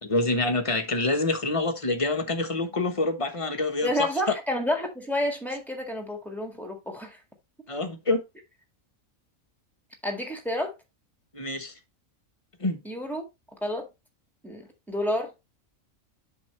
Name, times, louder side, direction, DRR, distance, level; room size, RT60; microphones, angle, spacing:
voice 1, 0.0-4.1 7.7-8.2 11.3-11.7 12.6-12.8, left 2 dB, 25° left, 1.0 m, -26 dB
voice 2, 3.8-7.2 10.0-10.7 12.9-13.2 13.6-13.9 14.4-15.3, left 1 dB, ahead, 1.7 m, -29 dB
7.6 x 5.8 x 3.1 m
omnidirectional pair, 1.4 m